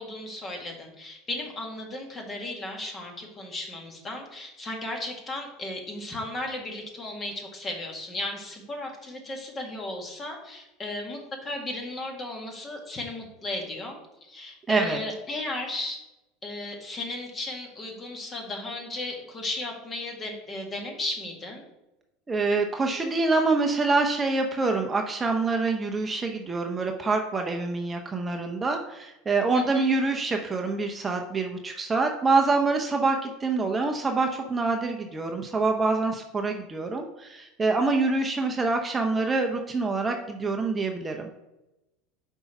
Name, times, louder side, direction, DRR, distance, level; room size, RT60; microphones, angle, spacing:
voice 1, 0.0-16.0 16.4-21.6 29.5-29.8, left 2 dB, 30° left, 1 dB, 1.9 m, -35 dB
voice 2, 14.7-15.0 22.3-41.3, right 3 dB, 20° right, 3 dB, 0.7 m, -26 dB
5.5 x 4.6 x 5.8 m, 0.96 s
hypercardioid pair, 80°, 0 cm